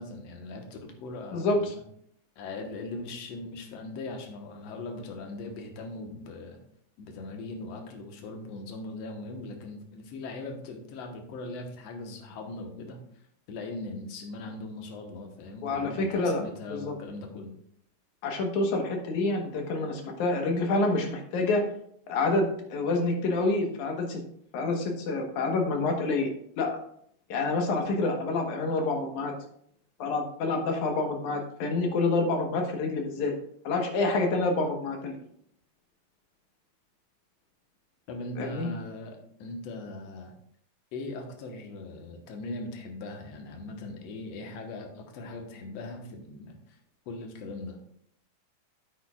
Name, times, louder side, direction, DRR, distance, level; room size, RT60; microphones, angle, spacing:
voice 1, 0.0-1.8 2.4-6.6 7.0-13.0 13.5-17.5 38.1-40.3 40.9-46.8 47.1-47.8, left 2 dB, 65° left, 3 dB, 2.2 m, -40 dB
voice 2, 1.3-1.7 15.6-16.4 16.7-16.9 18.2-21.6 22.1-24.2 24.5-26.3 26.6-26.7 27.3-29.3 30.0-33.3 33.6-35.2 38.4-38.7, left 3 dB, 80° left, 3 dB, 2.7 m, -27 dB
9.2 x 9.0 x 2.4 m, 0.67 s
omnidirectional pair, 3.3 m